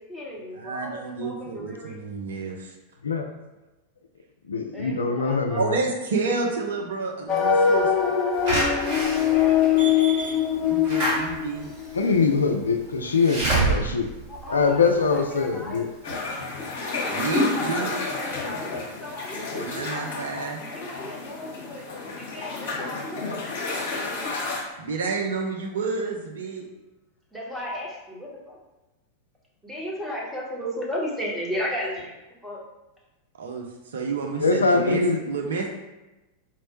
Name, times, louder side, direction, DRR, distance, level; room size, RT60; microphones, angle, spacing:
voice 1, 0.0-2.0 4.7-5.6 8.9-10.0 14.3-15.9 17.7-18.7 19.0-19.9 20.7-24.0 27.3-28.6 29.6-32.2 32.4-32.6, equal, 5° right, -4 dB, 1.0 m, -35 dB
voice 2, 0.5-2.6 5.5-7.9 10.6-11.7 17.1-18.0 19.6-20.7 24.8-26.7 33.4-33.6 33.9-35.7, right 4 dB, 65° right, 1 dB, 0.5 m, -29 dB
voice 3, 4.5-5.6 11.9-14.1 14.5-15.9 34.4-35.2, left 4 dB, 75° left, 4 dB, 0.3 m, -22 dB
sound 1, 7.3-12.1, left 8 dB, 25° left, 0.8 m, -22 dB
Slam / Alarm, 8.5-15.3 15.7-15.8 16.1-16.2, right 2 dB, 50° right, 1.5 m, -28 dB
sound 2, 16.0-24.6, left 3 dB, 55° left, 0.7 m, -31 dB
4.3 x 2.1 x 2.9 m, 1.0 s
figure-of-eight pair, 90°, 0 cm